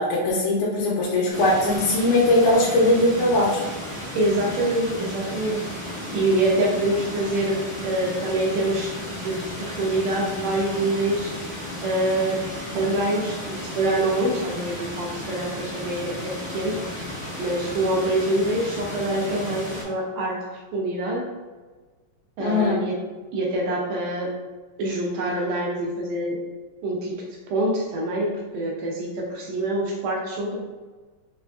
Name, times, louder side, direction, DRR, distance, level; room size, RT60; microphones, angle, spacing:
voice 1, 0.0-3.6 22.4-22.8, left 1 dB, 75° left, -5 dB, 2.0 m, -20 dB
sound 1, 1.3-19.8, left 1 dB, 50° left, 0.9 m, -34 dB
voice 2, 4.1-5.6 6.1-11.4 11.8-12.4 12.7-16.8 17.4-21.3 22.4-22.9 23.3-24.4 24.8-26.4 26.8-27.1 27.5-30.6, right 1 dB, 85° right, -2 dB, 1.5 m, -25 dB
5.1 x 2.3 x 2.4 m, 1.4 s
omnidirectional pair, 3.8 m